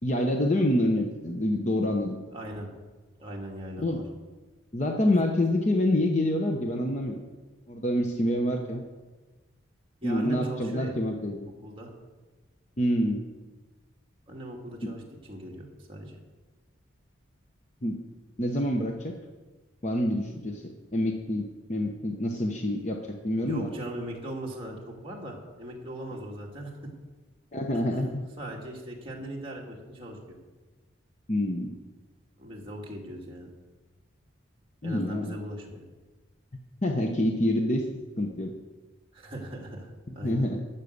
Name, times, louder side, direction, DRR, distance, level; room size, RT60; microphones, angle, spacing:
voice 1, 0.0-2.2 3.8-4.0 4.7-7.2 7.7-8.8 10.0-11.5 12.8-13.2 14.8-14.9 17.8-18.0 18.4-19.2 19.8-23.0 23.2-23.7 27.5-28.2 31.3-31.7 34.8-35.4 36.8-37.9 38.2-38.5 40.2-40.6, left 1 dB, 35° left, 3 dB, 0.9 m, -27 dB
voice 2, 2.3-2.7 3.2-4.1 10.0-11.0 11.6-11.9 14.3-15.0 15.3-16.2 23.4-26.8 27.9-30.2 32.4-33.5 34.8-35.8 39.1-40.5, right 1 dB, 25° right, -2 dB, 2.0 m, -39 dB
12.0 x 7.4 x 6.6 m, 1.3 s
head